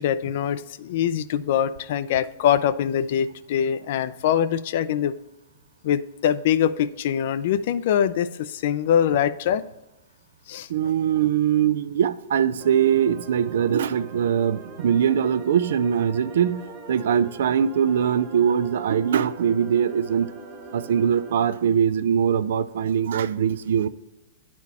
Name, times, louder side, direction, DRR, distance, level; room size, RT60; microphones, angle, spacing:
voice 1, 0.0-5.1 5.8-9.6 10.5-10.7, left 9 dB, 60° left, 0.4 m, -23 dB
voice 2, 10.7-16.6 16.9-20.3 20.7-23.9, right 8 dB, 70° right, 0.4 m, -22 dB
sound 1, 12.6-21.3, right 3 dB, 25° right, 1.2 m, -41 dB
9.7 x 4.3 x 4.1 m
hypercardioid pair, 140°, 0 cm